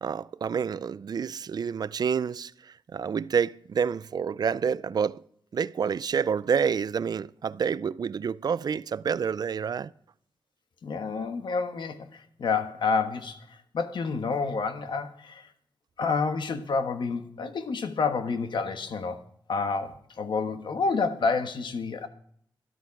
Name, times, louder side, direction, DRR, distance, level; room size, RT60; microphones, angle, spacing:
voice 1, 0.0-2.5 2.9-5.2 5.5-9.9, right 6 dB, 55° right, 0.4 m, -28 dB
voice 2, 10.8-13.4 13.7-15.5 16.0-19.2 19.5-22.1, left 4 dB, 70° left, 1.4 m, -29 dB
12.5 x 12.5 x 4.8 m
wide cardioid pair, 125°, 8 cm